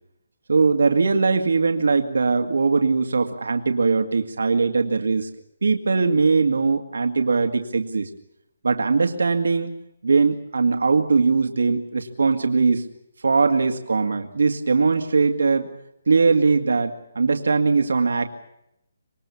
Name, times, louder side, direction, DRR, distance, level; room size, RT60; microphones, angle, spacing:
voice 1, 0.5-5.3 5.6-8.1 8.6-9.7 10.0-12.8 13.2-15.7 16.1-18.3, right 4 dB, 90° right, 5 dB, 2.1 m, -20 dB
25.5 x 21.5 x 7.1 m, 0.81 s
hypercardioid pair, 175°, 0 cm